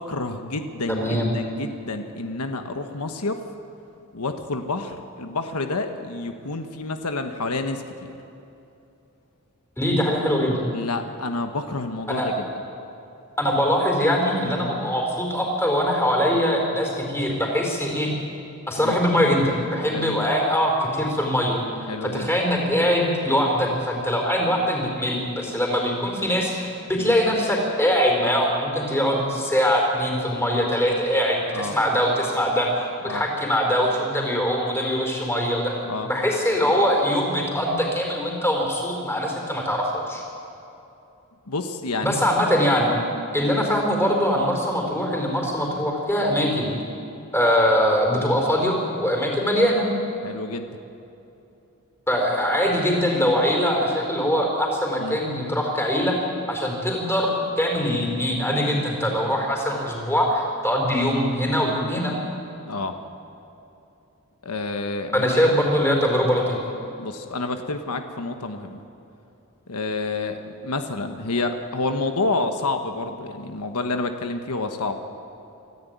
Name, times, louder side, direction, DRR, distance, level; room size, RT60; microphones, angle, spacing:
voice 1, 0.0-3.4 4.1-7.8 10.7-12.5 18.8-19.0 19.9-20.3 21.9-22.3 27.0-27.2 31.5-31.7 33.1-33.2 35.8-36.1 41.5-42.2 50.2-50.7 55.0-55.2 62.7-62.9 64.4-65.5 67.0-68.8 69.7-75.0, left 3 dB, 90° left, 6 dB, 1.3 m, -29 dB
voice 2, 0.9-1.3 9.8-10.6 12.1-12.3 13.4-18.1 18.7-21.6 22.0-35.7 36.0-40.2 42.0-42.9 43.3-46.7 47.3-49.9 52.1-56.2 56.5-62.1 65.1-66.6, equal, 10° left, 0 dB, 4.5 m, -22 dB
25.0 x 14.0 x 9.5 m, 2.8 s
head